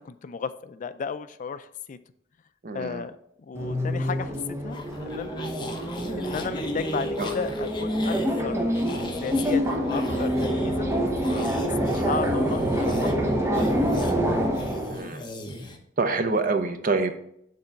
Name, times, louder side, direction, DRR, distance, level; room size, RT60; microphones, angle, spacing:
voice 1, 0.0-2.0 2.7-3.1 3.4-4.4 4.6-4.8 5.0-5.3 6.2-8.2 8.4-10.9 11.4-13.8, left 5 dB, 45° left, 13 dB, 0.3 m, -34 dB
voice 2, 2.6-3.0 7.2-7.3 14.9-15.2 16.0-17.2, right 3 dB, 50° right, 8 dB, 0.7 m, -26 dB
sound 1, 3.5-15.0, equal, 15° right, 0.8 m, -26 dB
sound 2, 4.7-15.8, left 1 dB, 25° left, 0.9 m, -38 dB
6.6 x 3.8 x 5.8 m, 0.72 s
head